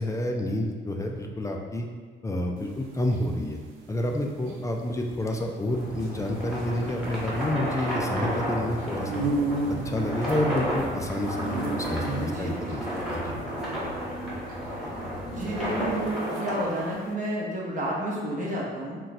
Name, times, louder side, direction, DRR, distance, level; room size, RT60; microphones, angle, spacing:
voice 1, 0.0-1.9 2.2-3.6 3.9-9.3 9.9-13.3, left 1 dB, 15° left, 1 dB, 0.3 m, -29 dB
sound 1, 2.6-16.8, right 3 dB, 90° right, 0.4 m, -34 dB
sound 2, 5.7-16.9, equal, ahead, 1.1 m, -33 dB
sound 3, 5.8-16.1, equal, 60° right, 1.1 m, -39 dB
voice 2, 12.2-12.6 15.2-15.9 16.3-19.0, equal, 40° right, -5 dB, 0.9 m, -31 dB
2.5 x 2.2 x 4.0 m, 1.5 s
cardioid pair, 90°, 20 cm